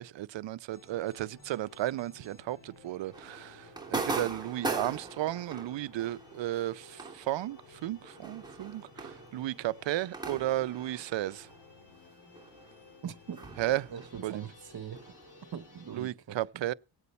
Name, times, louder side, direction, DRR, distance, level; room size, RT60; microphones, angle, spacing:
voice 1, 0.0-11.5 13.6-13.9 14.2-14.4 15.9-16.7, right 14 dB, 80° right, 0.6 m, -34 dB
sound 1, 0.7-16.1, left 4 dB, 75° left, 2.5 m, -56 dB
sound 2, 3.1-12.1 12.3-15.9, right 3 dB, 10° right, 2.8 m, -41 dB
voice 2, 13.0-13.5 13.9-15.1 15.5-16.7, right 8 dB, 60° right, 1.1 m, -42 dB
18.5 x 8.3 x 4.2 m
cardioid pair, 90°, 43 cm